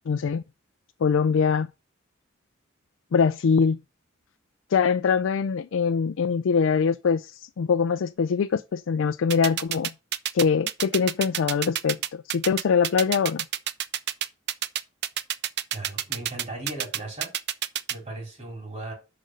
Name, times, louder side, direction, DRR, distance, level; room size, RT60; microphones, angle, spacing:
voice 1, 0.1-0.4 1.0-1.7 3.1-3.8 4.7-9.9 10.3-13.5, left 6 dB, 75° left, 0.4 m, -23 dB
sound 1, 9.3-17.9, right 11 dB, 60° right, 0.5 m, -28 dB
voice 2, 15.7-17.3 17.9-18.9, right 2 dB, 35° right, 4.1 m, -37 dB
6.5 x 5.1 x 6.3 m
head